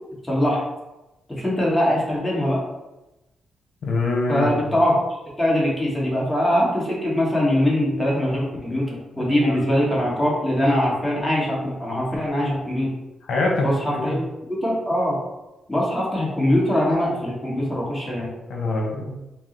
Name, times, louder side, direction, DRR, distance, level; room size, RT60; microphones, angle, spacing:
voice 1, 0.2-0.6 1.3-2.6 4.3-4.9 5.4-12.9 13.6-14.2 14.5-15.2 15.7-18.3, left 1 dB, 5° left, -5 dB, 1.2 m, -22 dB
voice 2, 3.8-4.5 9.4-9.6 13.3-14.2 18.5-19.1, left 2 dB, 65° left, -1 dB, 0.9 m, -24 dB
4.5 x 2.0 x 3.8 m, 1.0 s
cardioid pair, 120°, 0 cm